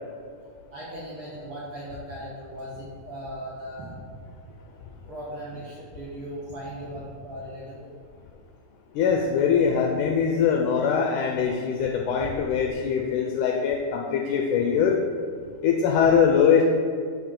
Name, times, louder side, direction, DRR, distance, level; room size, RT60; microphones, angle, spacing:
voice 1, 0.7-4.0 5.1-7.9, equal, 60° right, -7 dB, 1.4 m, -38 dB
voice 2, 9.0-15.0 15.6-16.6, left 7 dB, 80° left, 1 dB, 1.8 m, -22 dB
11.0 x 4.8 x 3.7 m, 2.2 s
omnidirectional pair, 4.1 m